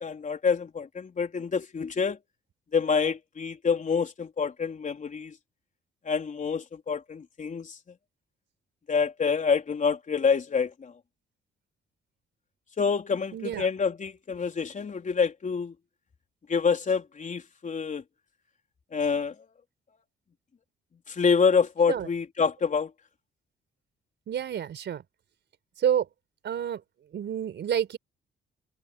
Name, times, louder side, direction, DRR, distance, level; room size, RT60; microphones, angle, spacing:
voice 1, 0.0-2.2 2.7-5.3 6.0-7.8 8.9-10.9 12.8-15.7 16.5-18.0 18.9-19.3 21.1-22.9, left 5 dB, 40° left, 4.1 m, -27 dB
voice 2, 13.3-13.7 21.9-22.1 24.3-25.0 25.8-26.1 26.4-26.8 27.1-28.0, right 9 dB, 65° right, 4.5 m, -28 dB
cardioid pair, 90°, 20 cm